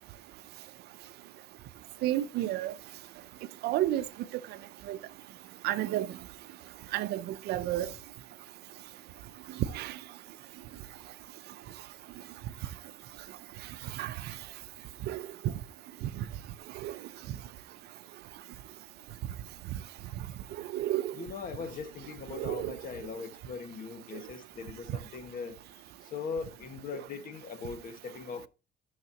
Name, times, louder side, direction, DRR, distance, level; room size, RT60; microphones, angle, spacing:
voice 1, 2.0-2.7 3.6-4.0 4.9-5.0 5.6-6.1 6.9-7.9 9.7-9.9 14.0-14.1 15.1-15.2 16.8-16.9 20.7-21.1 22.3-22.8, right 14 dB, 75° right, 0.6 m, -30 dB
voice 2, 21.1-28.5, left 5 dB, 55° left, 1.7 m, -40 dB
13.5 x 6.6 x 2.9 m
cardioid pair, 110°, 17 cm